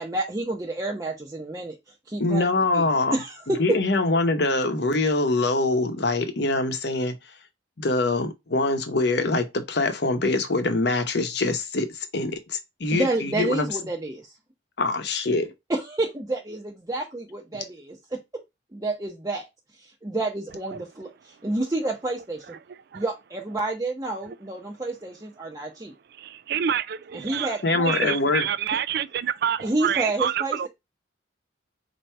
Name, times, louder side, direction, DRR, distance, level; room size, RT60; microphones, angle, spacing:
voice 1, 0.0-1.8 2.1-2.4 2.7-3.8 12.9-14.3 15.7-18.2 18.7-19.5 19.8-22.5 22.9-25.9 27.1-28.1 28.7-28.8 29.6-30.7, right 2 dB, 20° right, 0.7 m, -29 dB
voice 2, 2.2-3.2 3.6-7.1 7.8-13.7 14.8-15.5 27.6-28.5, left 2 dB, 60° left, 0.8 m, -24 dB
voice 3, 22.7-23.0 24.3-24.4 26.1-30.7, right 9 dB, 55° right, 0.3 m, -28 dB
4.4 x 2.7 x 4.4 m
head